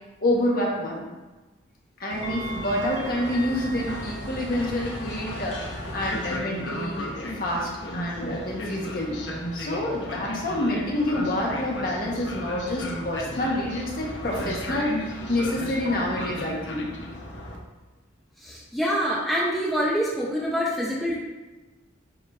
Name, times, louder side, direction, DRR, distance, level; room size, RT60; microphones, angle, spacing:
voice 1, 0.2-1.0 2.0-9.2 9.5-16.9, left 1 dB, 50° left, -3 dB, 1.5 m, -27 dB
Train, 2.1-17.6, left 1 dB, 65° left, 1.0 m, -35 dB
voice 2, 18.4-21.2, equal, ahead, -5 dB, 0.9 m, -26 dB
9.7 x 4.5 x 2.7 m, 1.2 s
head